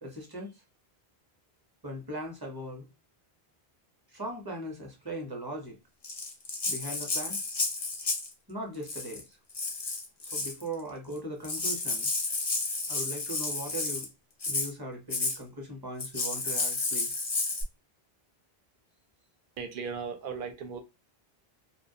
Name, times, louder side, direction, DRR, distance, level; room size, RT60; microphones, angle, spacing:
voice 1, 0.0-0.5 1.8-2.9 4.1-5.8 6.7-7.4 8.5-9.4 10.3-12.1 12.9-14.1 14.5-17.2, right 1 dB, 25° right, 0.6 m, -39 dB
Rattle (instrument), 6.0-8.3 8.8-9.2 9.5-10.6 11.2-11.3 11.4-14.1 14.4-14.7 15.1-15.4 16.0-17.6, left 3 dB, 35° left, 0.4 m, -31 dB
voice 2, 19.6-20.8, right 5 dB, 60° right, 0.6 m, -37 dB
2.3 x 2.1 x 2.7 m
omnidirectional pair, 1.0 m